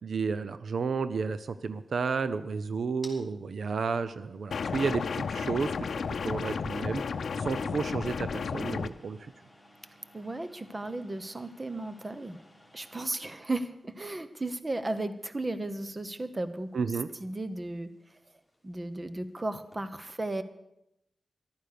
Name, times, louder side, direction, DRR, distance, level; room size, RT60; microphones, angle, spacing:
voice 1, 0.0-5.7 6.2-7.0 7.4-9.3 16.7-17.1, right 5 dB, 75° right, 13 dB, 0.6 m, -32 dB
sound 1, 1.2-19.9, left 1 dB, ahead, 3.4 m, -59 dB
sound 2, 4.5-8.9, left 5 dB, 80° left, 0.6 m, -33 dB
voice 2, 10.1-12.4 12.7-16.9 17.2-17.9 18.6-20.4, right 2 dB, 25° right, 12 dB, 0.9 m, -35 dB
14.0 x 12.0 x 6.8 m, 0.85 s
wide cardioid pair, 130°, 0 cm